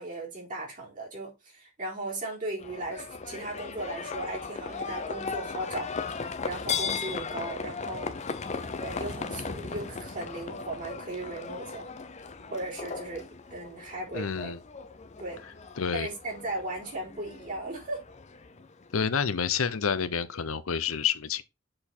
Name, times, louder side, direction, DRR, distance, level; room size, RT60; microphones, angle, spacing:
voice 1, 0.0-5.9 6.2-8.1 8.5-11.9 12.5-14.5 15.2-15.4 15.9-18.0, right 1 dB, 40° right, 4.0 m, -37 dB
Livestock farm animals working animals, 2.6-19.1, left 5 dB, 35° left, 0.8 m, -37 dB
voice 2, 14.1-14.6 15.8-16.1 18.9-21.4, left 6 dB, 80° left, 0.8 m, -28 dB
7.7 x 4.5 x 4.4 m
head